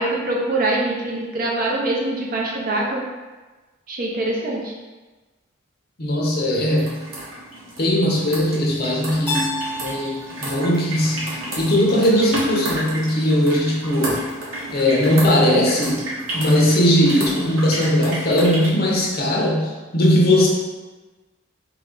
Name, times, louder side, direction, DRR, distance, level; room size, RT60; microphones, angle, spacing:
voice 1, 0.0-3.0 3.9-4.7, right 2 dB, 45° right, -2 dB, 0.6 m, -23 dB
voice 2, 6.0-7.0 7.8-9.5 9.8-11.3 11.6-14.2 14.7-16.0 16.3-20.5, left 1 dB, 50° left, -2 dB, 0.6 m, -19 dB
sound 1, 6.5-18.7, right 1 dB, 80° right, 0.9 m, -32 dB
Keyboard (musical), 9.3-12.1, left 1 dB, 10° left, 0.6 m, -32 dB
3.1 x 2.5 x 3.7 m, 1.2 s
head